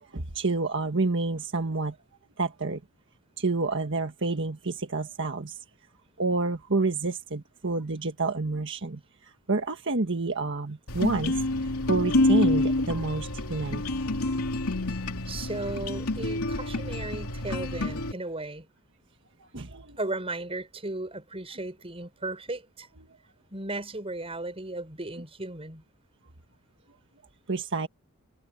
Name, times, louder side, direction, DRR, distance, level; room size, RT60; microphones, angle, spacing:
voice 1, 0.0-2.0 2.4-2.8 3.4-5.6 6.2-14.0 19.4-20.0 27.5-27.9, right 3 dB, 55° right, 1.5 m, -29 dB
sound 1, 10.9-18.1, left 2 dB, 80° left, 2.8 m, -28 dB
voice 2, 15.3-18.7 20.0-22.9 23.5-25.8, right 2 dB, 25° right, 6.6 m, -35 dB
head